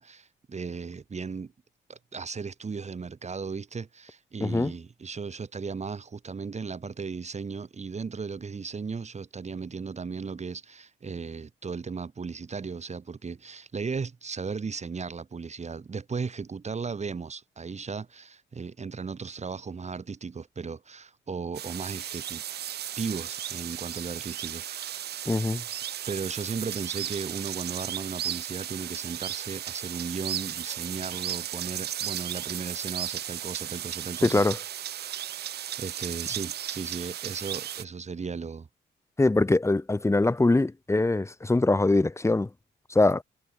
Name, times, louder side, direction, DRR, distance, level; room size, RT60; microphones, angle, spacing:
voice 1, 0.0-1.5 1.9-22.4 23.0-25.3 26.1-34.4 35.8-38.7, right 5 dB, 35° right, 5.0 m, -36 dB
voice 2, 4.4-4.7 25.3-25.6 34.2-34.6 39.2-42.5 42.9-43.2, left 2 dB, 15° left, 1.2 m, -23 dB
sound 1, 21.5-37.8, right 11 dB, 55° right, 0.6 m, -35 dB
cardioid pair, 90°, 20 cm